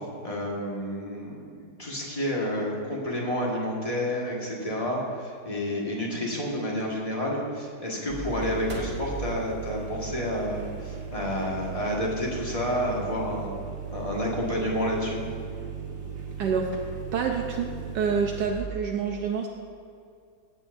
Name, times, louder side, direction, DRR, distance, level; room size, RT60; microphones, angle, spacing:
voice 1, 0.2-13.5 13.9-15.2, left 1 dB, 20° left, -3 dB, 1.6 m, -30 dB
sound 1, 8.1-18.5, right 6 dB, 35° right, 1.4 m, -37 dB
voice 2, 16.4-16.7 17.1-19.5, right 6 dB, 75° right, 2 dB, 1.3 m, -27 dB
15.0 x 8.5 x 2.6 m, 2.3 s
omnidirectional pair, 2.0 m